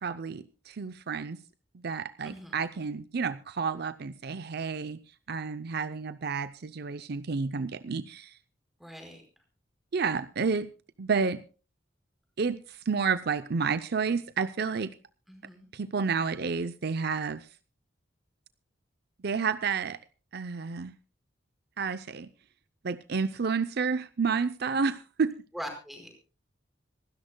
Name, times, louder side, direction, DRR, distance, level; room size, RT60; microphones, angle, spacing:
voice 1, 0.0-1.4 1.8-5.0 5.3-8.3 9.9-10.7 11.0-11.4 12.4-14.9 15.7-17.4 19.2-20.0 20.3-20.9 21.8-22.3 22.8-25.3, right 5 dB, 55° right, 13 dB, 0.6 m, -30 dB
voice 2, 2.2-2.6 8.8-9.2 15.3-15.7 25.5-26.2, equal, ahead, 3 dB, 4.8 m, -42 dB
26.0 x 13.0 x 2.2 m, 0.36 s
head